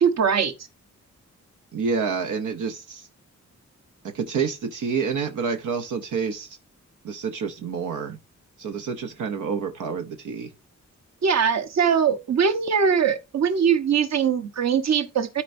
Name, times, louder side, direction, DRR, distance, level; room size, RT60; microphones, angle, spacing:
voice 1, 0.0-0.5 11.2-15.4, right 7 dB, 60° right, 1.1 m, -21 dB
voice 2, 1.7-3.1 4.1-6.6 7.0-8.2 8.6-10.5, right 5 dB, 90° right, 0.9 m, -28 dB
12.5 x 4.5 x 2.6 m
cardioid pair, 80°, 30 cm